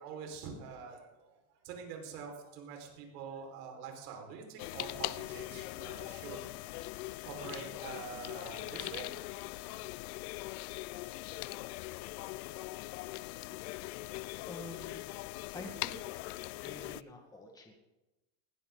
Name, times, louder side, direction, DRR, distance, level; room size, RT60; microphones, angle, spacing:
voice 1, 0.0-6.4 6.7-7.0 7.2-9.4 12.1-12.6 13.0-13.4, right 6 dB, 70° right, 2 dB, 5.4 m, -46 dB
sound 1, 4.6-17.0, left 20 dB, 65° left, 0.6 m, -41 dB
voice 2, 14.5-15.1 15.5-16.0 16.5-17.7, left 1 dB, 10° left, 1 dB, 1.9 m, -47 dB
20.0 x 16.0 x 4.0 m, 1.0 s
supercardioid pair, 160°, 48 cm